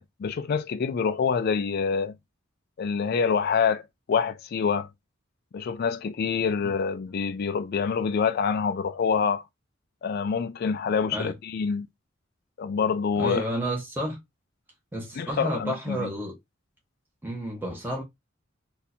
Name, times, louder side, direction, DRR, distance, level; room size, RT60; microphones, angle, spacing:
voice 1, 0.0-2.1 2.8-4.9 5.5-9.4 10.0-11.9 12.6-13.4 15.2-16.1, left 6 dB, 50° left, 0.4 m, -26 dB
voice 2, 13.2-14.2 14.9-16.4 17.2-18.0, right 1 dB, 10° right, 0.9 m, -31 dB
2.7 x 2.4 x 4.1 m
head